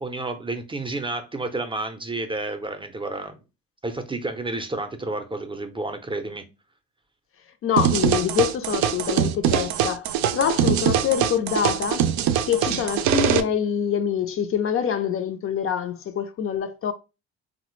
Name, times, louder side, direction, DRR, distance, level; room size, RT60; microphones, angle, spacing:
voice 1, 0.0-3.4 3.8-6.4, right 2 dB, 15° right, 0.5 m, -30 dB
voice 2, 7.6-12.1 12.5-16.9, left 8 dB, 45° left, 0.4 m, -25 dB
sound 1, 7.8-13.4, right 9 dB, 70° right, 0.4 m, -22 dB
3.2 x 2.0 x 3.0 m
supercardioid pair, 80°, 30 cm